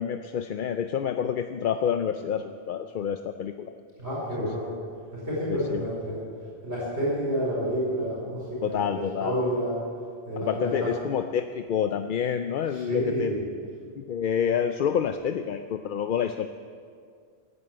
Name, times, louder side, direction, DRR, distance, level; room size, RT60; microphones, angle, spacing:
voice 1, 0.0-3.7 4.4-4.5 5.5-5.9 8.6-9.4 10.4-13.3 14.0-16.5, left 8 dB, 60° left, 8 dB, 0.7 m, -28 dB
voice 2, 4.0-4.7 5.1-6.2 6.6-9.8 10.3-10.9 12.7-13.4, equal, 85° right, -7 dB, 5.2 m, -29 dB
15.5 x 9.7 x 8.7 m, 2.2 s
omnidirectional pair, 1.1 m